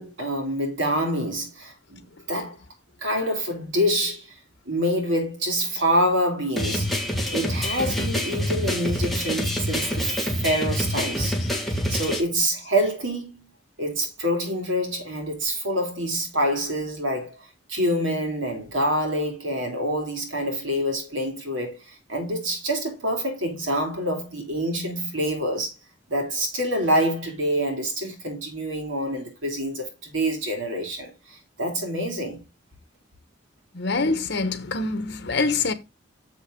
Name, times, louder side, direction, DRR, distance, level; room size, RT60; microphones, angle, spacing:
voice 1, 0.0-2.6 3.0-4.3 4.7-6.9 7.3-13.4 13.8-25.7 26.1-32.4, equal, 85° right, 3.3 m, -26 dB
sound 1, 6.6-12.2, equal, ahead, 1.7 m, -26 dB
voice 2, 33.7-35.7, left 3 dB, 60° left, 1.3 m, -25 dB
7.2 x 6.4 x 3.9 m
head